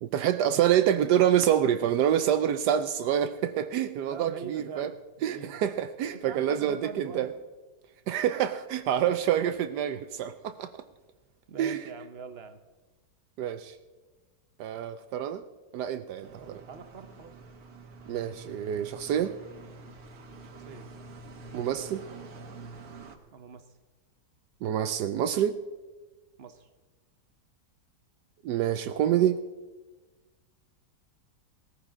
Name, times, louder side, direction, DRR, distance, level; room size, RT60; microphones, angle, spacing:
voice 1, 0.0-4.9 5.2-7.3 8.1-10.7 11.6-11.8 13.4-13.7 14.6-15.4 15.7-16.6 18.1-19.3 21.5-22.0 24.6-25.6 28.4-29.4, right 10 dB, 80° right, 10 dB, 1.2 m, -27 dB
voice 2, 4.0-5.6 6.1-7.3 9.0-9.2 11.5-12.6 16.4-17.4 20.2-20.9 23.3-23.7 26.4-26.7, right 6 dB, 45° right, 9 dB, 0.9 m, -44 dB
sound 1, 16.2-23.2, right 3 dB, 60° right, 1.6 m, -47 dB
19.0 x 14.5 x 3.7 m, 1.3 s
omnidirectional pair, 1.8 m